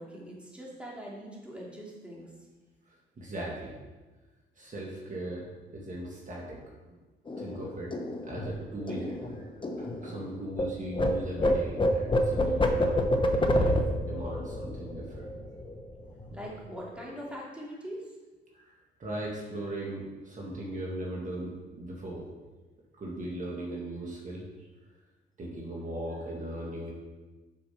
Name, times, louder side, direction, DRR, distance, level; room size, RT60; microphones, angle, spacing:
voice 1, 0.0-2.3 16.3-18.1, equal, 5° right, -4 dB, 2.5 m, -42 dB
voice 2, 2.9-3.8 4.6-6.6 6.9-7.0 7.3-7.9 8.2-9.5 9.8-15.3 18.5-22.2 23.0-24.7 25.4-26.9, right 1 dB, 40° right, -3 dB, 2.0 m, -38 dB
sound 1, 7.3-10.7 10.9-15.9 16.2-16.5 16.7-17.3, left 1 dB, 25° left, 1.0 m, -28 dB
7.5 x 5.6 x 5.8 m, 1.2 s
cardioid pair, 90°, 20 cm